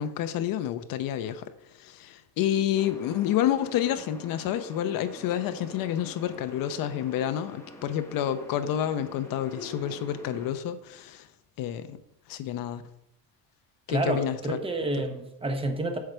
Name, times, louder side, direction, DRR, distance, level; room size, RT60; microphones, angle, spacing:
voice 1, 0.0-1.5 1.8-11.3 11.6-12.0 12.3-12.8 13.9-14.6, left 10 dB, 60° left, 10 dB, 0.7 m, -29 dB
sound 1, 2.7-10.5, left 1 dB, 5° left, 1.1 m, -46 dB
voice 2, 13.9-16.0, right 2 dB, 15° right, 5 dB, 0.9 m, -29 dB
8.1 x 4.7 x 6.7 m, 0.78 s
cardioid pair, 160°, 38 cm